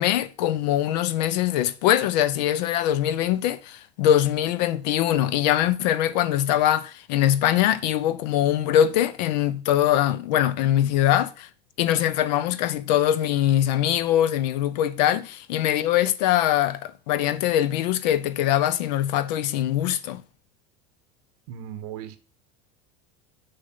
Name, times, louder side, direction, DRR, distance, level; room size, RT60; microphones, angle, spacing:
voice 1, 0.0-11.5 11.8-20.2, left 11 dB, 85° left, 0.8 m, -22 dB
voice 2, 21.5-22.2, right 10 dB, 65° right, 1.3 m, -37 dB
6.9 x 5.5 x 5.6 m
cardioid pair, 180°, 21 cm